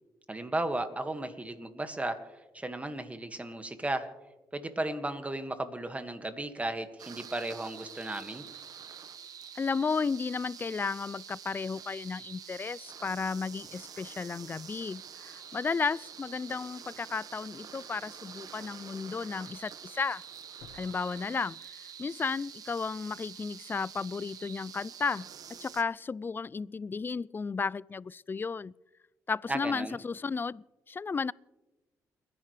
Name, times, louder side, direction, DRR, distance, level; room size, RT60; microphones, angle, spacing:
voice 1, 0.3-2.2 2.5-4.1 4.5-8.4 29.5-30.0, right 2 dB, 20° right, 1.9 m, -35 dB
sound 1, 7.0-25.8, right 8 dB, 65° right, 1.1 m, -47 dB
voice 2, 9.6-20.2 20.7-28.7 29.3-31.3, left 5 dB, 30° left, 0.4 m, -34 dB
sound 2, 17.3-17.4 18.0-18.1 20.6-22.0 22.4-22.5, left 6 dB, 85° left, 1.6 m, -57 dB
29.5 x 11.0 x 3.3 m
supercardioid pair, 65°, 7 cm